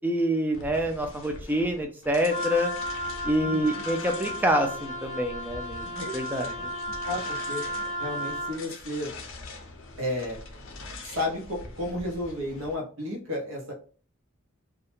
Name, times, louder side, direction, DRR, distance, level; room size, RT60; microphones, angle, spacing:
voice 1, 0.0-2.7 3.2-6.5, equal, 10° right, 4 dB, 0.3 m, -26 dB
sound 1, 0.5-12.8, left 3 dB, 70° left, 0.6 m, -44 dB
Wind instrument woodwind instrument, 2.3-8.6, equal, 25° right, 0.7 m, -34 dB
voice 2, 3.4-3.8 6.0-6.6 7.0-7.6 8.0-9.1 10.0-10.4 11.0-13.7, left 1 dB, 75° right, 0 dB, 0.8 m, -33 dB
2.3 x 2.1 x 2.9 m, 0.40 s
head